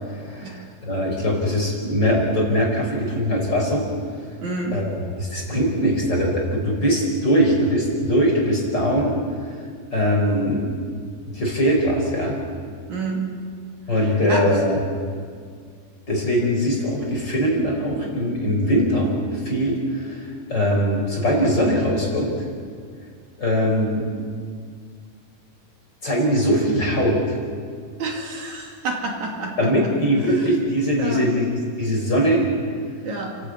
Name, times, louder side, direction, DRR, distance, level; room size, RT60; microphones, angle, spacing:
voice 1, 0.1-3.8 4.7-4.9 5.2-9.1 9.9-10.7 11.3-12.4 13.9-14.8 16.1-22.3 23.4-24.1 26.0-27.4 29.6-32.4, equal, 30° left, 0 dB, 4.5 m, -21 dB
voice 2, 4.4-4.8 12.9-13.3 13.9-14.6 28.0-29.9 30.2-30.5 31.0-31.3 33.0-33.4, right 3 dB, 60° right, 0 dB, 3.7 m, -29 dB
30.0 x 13.5 x 8.7 m, 2.1 s
omnidirectional pair, 4.0 m